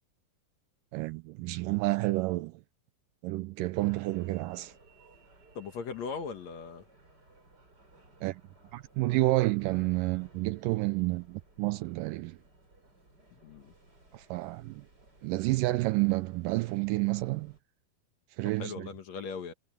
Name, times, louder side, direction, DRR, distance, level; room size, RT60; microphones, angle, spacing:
voice 1, 0.9-2.6 3.2-4.7 8.2-8.4 8.7-12.4 14.1-14.8 15.2-17.5 18.4-18.9, right 20 dB, 80° right, 2.0 m, -30 dB
sound 1, 3.7-17.6, right 2 dB, 25° right, 6.7 m, -60 dB
voice 2, 5.6-6.9 13.4-13.7 18.6-19.5, left 5 dB, 60° left, 2.3 m, -39 dB
omnidirectional pair, 4.2 m